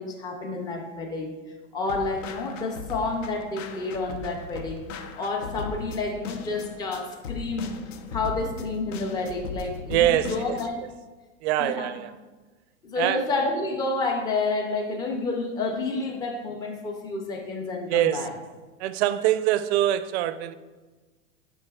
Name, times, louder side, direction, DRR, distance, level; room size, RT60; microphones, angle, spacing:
voice 1, 0.0-1.3 1.7-4.8 5.2-7.7 8.1-10.8 11.6-11.9 12.8-18.3, left 3 dB, 10° left, 0.3 m, -29 dB
sound 1, 1.9-10.7, left 4 dB, 90° left, 0.8 m, -38 dB
voice 2, 9.9-10.6 11.4-12.1 13.0-13.2 17.9-18.3 18.8-20.5, right 13 dB, 60° right, 0.5 m, -24 dB
10.5 x 5.3 x 2.3 m
supercardioid pair, 155°, 37 cm